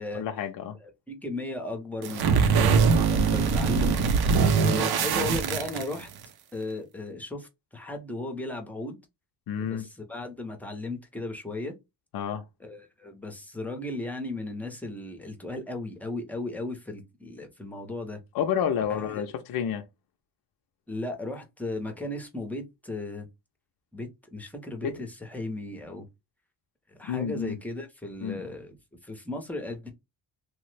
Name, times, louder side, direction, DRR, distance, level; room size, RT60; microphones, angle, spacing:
voice 1, 0.1-0.8 9.5-9.9 12.1-12.4 18.3-19.8 24.8-25.0 27.0-27.6 28.2-28.4, left 8 dB, 60° left, 0.5 m, -29 dB
voice 2, 0.8-3.9 4.5-6.1 6.5-9.0 9.6-11.7 12.6-18.2 18.9-19.2 20.9-23.3 23.9-26.1 27.0-28.8 29.0-29.9, left 2 dB, 5° left, 0.6 m, -36 dB
sound 1, 2.0-6.2, right 5 dB, 60° right, 0.5 m, -22 dB
3.0 x 2.0 x 3.1 m
cardioid pair, 130°, 42 cm